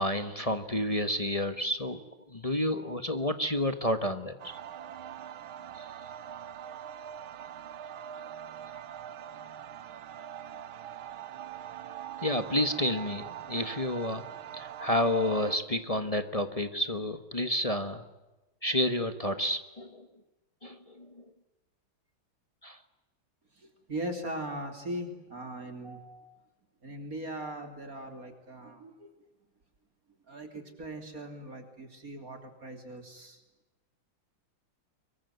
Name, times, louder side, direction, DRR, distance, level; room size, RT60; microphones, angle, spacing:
voice 1, 0.0-2.0 2.3-4.6 5.8-5.9 12.2-14.2 14.5-18.0 18.6-20.1 20.6-21.1 22.6-22.8, left 1 dB, 20° left, 9 dB, 1.1 m, -30 dB
sound 1, 4.4-15.6, right 9 dB, 80° right, 1.9 m, -43 dB
voice 2, 23.5-26.3 26.8-29.1 30.3-33.4, right 1 dB, 40° right, 6 dB, 3.7 m, -40 dB
25.0 x 22.5 x 9.4 m, 1.1 s
omnidirectional pair, 2.3 m